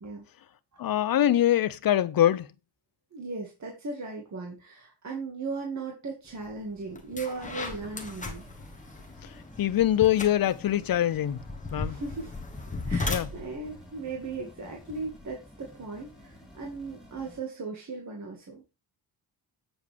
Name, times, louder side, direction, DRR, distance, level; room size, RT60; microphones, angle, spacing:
voice 1, 0.8-2.5 9.2-9.3 9.6-11.4 11.7-12.0 13.1-13.3, left 12 dB, 55° left, 0.7 m, -24 dB
voice 2, 3.1-8.4 11.8-18.6, right 4 dB, 40° right, 2.1 m, -37 dB
sound 1, 6.4-6.6 7.0-15.2, left 3 dB, 20° left, 1.4 m, -37 dB
sound 2, 7.4-17.4, equal, ahead, 3.5 m, -52 dB
8.3 x 7.2 x 3.5 m
wide cardioid pair, 135°, 42 cm